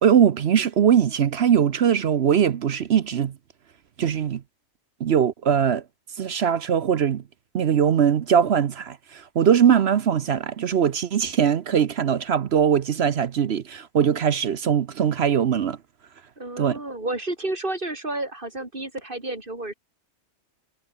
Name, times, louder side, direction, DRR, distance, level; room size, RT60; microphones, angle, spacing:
voice 1, 0.0-3.3 4.0-4.4 5.0-5.8 6.2-7.2 7.5-15.8 16.6-16.8, right 8 dB, 60° right, 1.0 m, -21 dB
voice 2, 16.4-19.7, right 2 dB, 40° right, 4.7 m, -31 dB
omnidirectional pair, 1.4 m